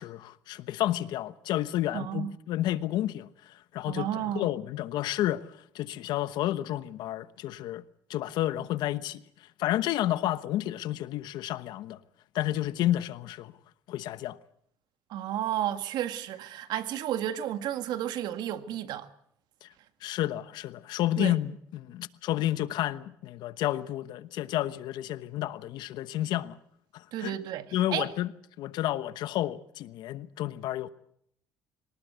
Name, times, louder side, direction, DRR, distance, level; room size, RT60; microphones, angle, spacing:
voice 1, 0.0-3.3 3.7-5.5 5.7-7.8 8.1-9.2 9.6-12.0 12.3-13.5 13.9-14.4 19.6-19.7 20.0-26.6 26.9-27.4 27.7-28.3 28.6-30.9, left 13 dB, 75° left, 1.1 m, -30 dB
voice 2, 1.9-2.3 3.9-4.5 15.1-19.1 21.2-21.4 27.1-28.1, right 11 dB, 75° right, 1.9 m, -32 dB
23.0 x 19.0 x 8.1 m
cardioid pair, 110°, 7 cm